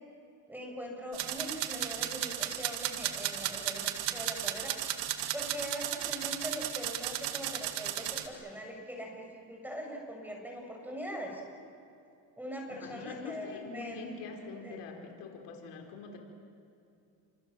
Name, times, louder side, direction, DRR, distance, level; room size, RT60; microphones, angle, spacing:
voice 1, 0.5-4.7 5.3-11.4 12.4-14.0 14.6-14.8, equal, 5° right, 1 dB, 8.0 m, -41 dB
sound 1, 1.1-8.3, right 12 dB, 85° right, 2.2 m, -35 dB
voice 2, 12.7-16.2, left 4 dB, 85° left, 2 dB, 4.4 m, -44 dB
29.5 x 27.0 x 7.6 m, 2.7 s
cardioid pair, 105°, 41 cm